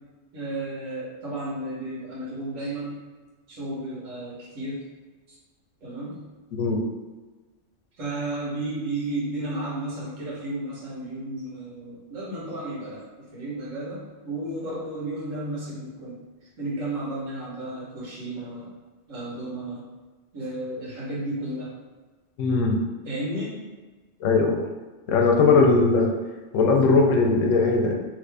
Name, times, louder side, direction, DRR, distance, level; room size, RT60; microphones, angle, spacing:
voice 1, 0.3-3.0 3.5-4.8 5.3-5.4 5.8-6.2 8.0-13.0 13.3-16.2 16.6-18.7 19.1-19.8 20.3-21.7 23.0-23.6, right 1 dB, 80° right, -6 dB, 1.5 m, -33 dB
voice 2, 6.5-6.8 22.4-22.8 24.2-24.6 25.1-26.1 26.5-28.0, left 3 dB, 80° left, 1 dB, 1.0 m, -19 dB
3.1 x 2.5 x 3.3 m, 1.3 s
omnidirectional pair, 1.3 m